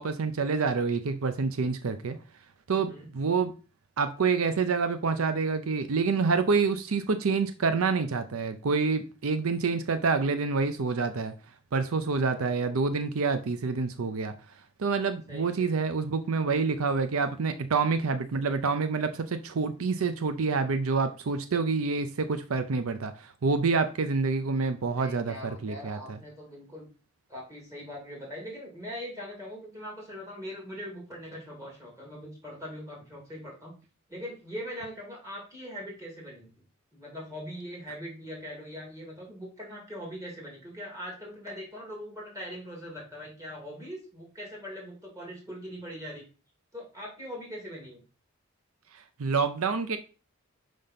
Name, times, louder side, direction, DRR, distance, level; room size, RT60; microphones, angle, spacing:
voice 1, 0.0-2.2 2.7-3.5 4.0-11.3 11.7-14.3 14.8-25.3 25.6-26.0 49.2-50.0, right 4 dB, 75° right, 0.6 m, -27 dB
voice 2, 2.7-3.1 15.3-15.7 24.8-26.9 27.3-33.7 34.1-36.5 36.9-46.2 46.7-48.0, equal, 15° right, 3.0 m, -41 dB
5.3 x 5.2 x 5.7 m
head